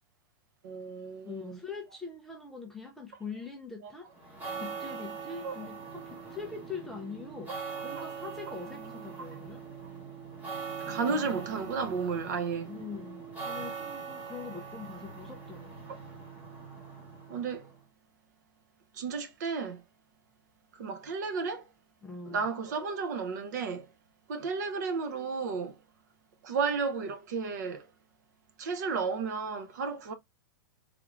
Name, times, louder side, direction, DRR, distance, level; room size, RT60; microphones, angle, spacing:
voice 1, 0.6-1.6 3.8-3.9 5.4-5.5 8.0-8.1 10.9-12.7 17.3-17.7 18.9-19.8 20.7-21.7 22.3-23.9 24.3-25.8 26.4-27.9 28.6-30.1, right 5 dB, 50° right, 0.6 m, -33 dB
voice 2, 1.2-7.5 7.8-9.6 12.7-15.9 22.0-22.5, left 5 dB, 5° left, 0.3 m, -43 dB
sound 1, 4.2-17.7, right 5 dB, 10° right, 0.8 m, -42 dB
3.5 x 2.4 x 3.0 m
supercardioid pair, 180°, 12 cm